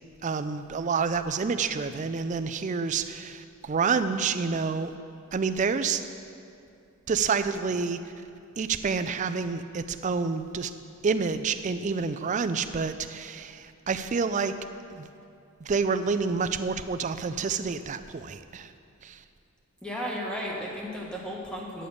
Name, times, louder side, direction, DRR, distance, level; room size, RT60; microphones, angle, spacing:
voice 1, 0.2-4.9 5.3-6.0 7.1-8.0 8.6-10.7 11.0-14.5 14.9-15.1 15.6-18.7 19.0-19.2, right 5 dB, 35° right, 10 dB, 0.3 m, -28 dB
voice 2, 19.8-21.9, equal, 5° left, -3 dB, 1.4 m, -34 dB
10.0 x 6.9 x 6.5 m, 2.5 s
head